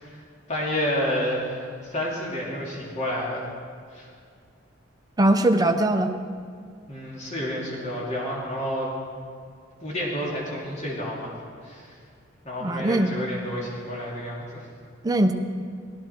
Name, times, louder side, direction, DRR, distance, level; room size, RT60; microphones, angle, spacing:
voice 1, 0.5-3.5 3.9-4.1 6.9-9.0 9.8-11.3 11.6-11.9 12.4-14.7, equal, 35° left, -4 dB, 2.4 m, -30 dB
voice 2, 5.2-6.1 12.6-13.2 15.0-15.3, right 1 dB, 20° right, 5 dB, 0.7 m, -21 dB
16.5 x 12.5 x 4.5 m, 2.1 s
head